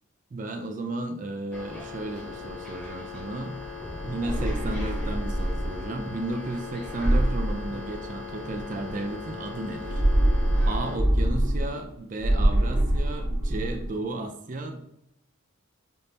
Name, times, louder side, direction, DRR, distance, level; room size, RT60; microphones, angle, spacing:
voice 1, 0.3-3.6 4.0-10.0 10.7-14.8, right 2 dB, 35° right, 6 dB, 0.4 m, -34 dB
sound 1, 1.5-11.0, left 4 dB, 5° left, 0.7 m, -39 dB
sound 2, 4.1-6.0 6.9-8.4 9.7-11.9 12.2-13.9, right 1 dB, 80° right, 1.3 m, -25 dB
5.3 x 2.0 x 2.7 m, 0.80 s
head